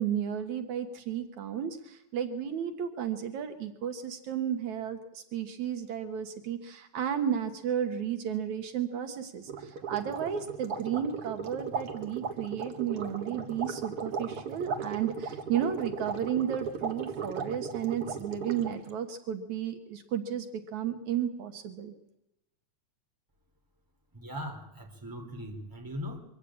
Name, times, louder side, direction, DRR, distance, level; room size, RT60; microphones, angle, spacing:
voice 1, 0.0-20.5 20.7-21.9, right 9 dB, 75° right, 7 dB, 2.9 m, -33 dB
sound 1, 9.5-18.9, right 6 dB, 50° right, 2.4 m, -37 dB
voice 2, 24.1-26.2, equal, 5° right, 4 dB, 3.2 m, -39 dB
24.0 x 15.5 x 8.7 m, 0.89 s
omnidirectional pair, 3.4 m